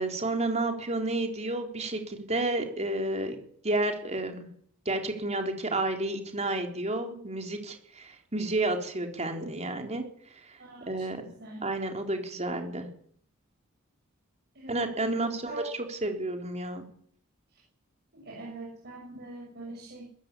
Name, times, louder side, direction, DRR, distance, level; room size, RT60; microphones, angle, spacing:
voice 1, 0.0-3.4 3.6-4.5 4.9-10.0 10.5-10.6 10.9-11.2 11.6-12.9 14.7-16.9, right 2 dB, 30° right, 4 dB, 4.1 m, -31 dB
voice 2, 10.6-11.1 11.4-11.6 14.5-15.7 17.5-17.6 18.1-20.0, right 2 dB, 50° right, -3 dB, 6.8 m, -42 dB
21.0 x 14.5 x 10.0 m, 0.63 s
head